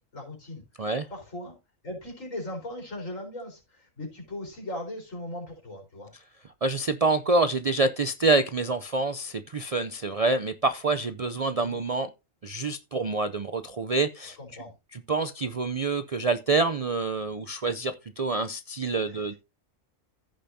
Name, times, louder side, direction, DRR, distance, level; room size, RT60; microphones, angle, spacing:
voice 1, 0.1-1.6 1.8-6.1 11.6-11.9 14.4-14.7 19.1-19.2, left 1 dB, 80° left, 4.7 m, -39 dB
voice 2, 6.6-12.1 12.4-14.4 14.9-19.3, right 3 dB, 50° right, 0.4 m, -27 dB
15.0 x 6.9 x 2.7 m
omnidirectional pair, 1.3 m